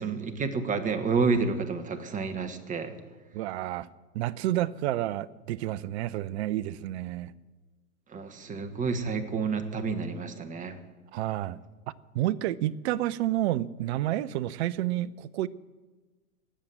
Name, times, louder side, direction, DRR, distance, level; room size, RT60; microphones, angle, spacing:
voice 1, 0.0-2.9 8.1-10.7, right 4 dB, 15° right, 8 dB, 1.4 m, -29 dB
voice 2, 3.3-3.9 4.1-7.3 11.1-11.6 12.1-15.5, right 14 dB, 50° right, 19 dB, 0.7 m, -30 dB
18.5 x 7.5 x 7.9 m, 1.3 s
hypercardioid pair, 110°, 44 cm